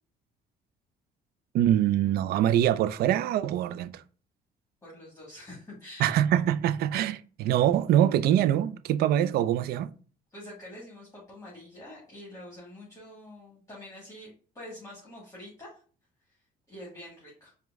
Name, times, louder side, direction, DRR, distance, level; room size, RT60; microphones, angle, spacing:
voice 1, 1.5-4.0 6.0-9.9, right 11 dB, 70° right, 0.4 m, -24 dB
voice 2, 4.8-6.2 10.3-15.8 16.3-17.5, left 1 dB, 20° left, 1.7 m, -46 dB
4.9 x 2.2 x 3.5 m
cardioid pair, 110°, 17 cm